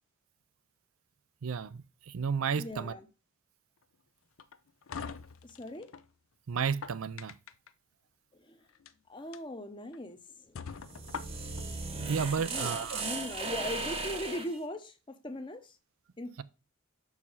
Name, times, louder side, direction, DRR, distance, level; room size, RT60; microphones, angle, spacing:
voice 1, 1.4-2.9 6.5-7.3 12.1-13.0, right 6 dB, 85° right, 0.5 m, -32 dB
voice 2, 2.6-3.1 5.4-5.9 8.3-8.6 9.1-10.2 10.4-10.6 10.9-11.1 12.4-15.8 16.2-16.3, left 1 dB, 20° left, 0.8 m, -40 dB
sound 1, 4.4-6.1 6.6-7.7 8.7-8.9 9.3-9.4 9.9-10.0 10.5-11.7, left 6 dB, 80° left, 0.5 m, -43 dB
sound 2, 10.7-14.6, right 3 dB, 25° right, 1.0 m, -37 dB
6.1 x 4.8 x 5.5 m
head